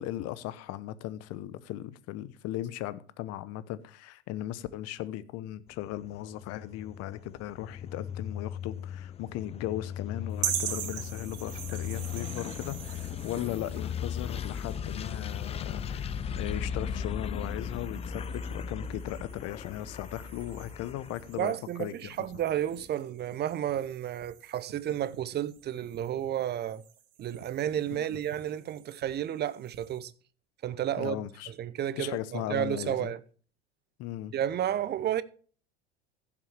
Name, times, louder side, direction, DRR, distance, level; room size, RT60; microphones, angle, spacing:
voice 1, 0.0-21.5 21.8-22.1 27.9-28.2 31.0-31.5 32.0-33.1 34.0-34.3, left 13 dB, 45° left, 0.9 m, -37 dB
sound 1, 5.7-21.4, left 7 dB, 20° left, 0.4 m, -37 dB
sound 2, 10.4-30.0, right 10 dB, 70° right, 1.9 m, -43 dB
voice 2, 21.3-26.8 27.2-30.1 30.6-33.2 34.3-35.2, right 11 dB, 30° right, 0.7 m, -32 dB
15.5 x 7.2 x 3.3 m
hypercardioid pair, 85°, 34 cm